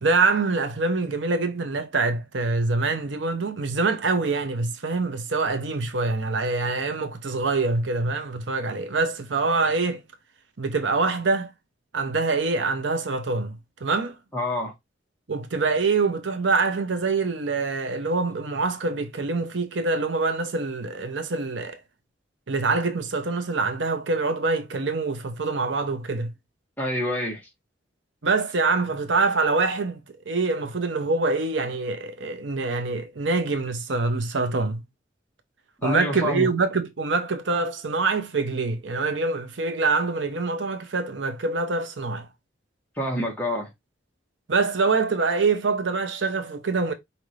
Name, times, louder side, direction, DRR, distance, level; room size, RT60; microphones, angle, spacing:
voice 1, 0.0-10.0 10.6-11.5 11.9-14.2 15.3-21.8 22.5-26.3 28.2-34.8 35.8-42.3 44.5-46.9, right 3 dB, 85° right, 0.8 m, -25 dB
voice 2, 14.3-14.7 26.8-27.4 35.8-36.5 43.0-43.7, left 1 dB, 10° left, 1.6 m, -27 dB
5.1 x 2.9 x 3.1 m
head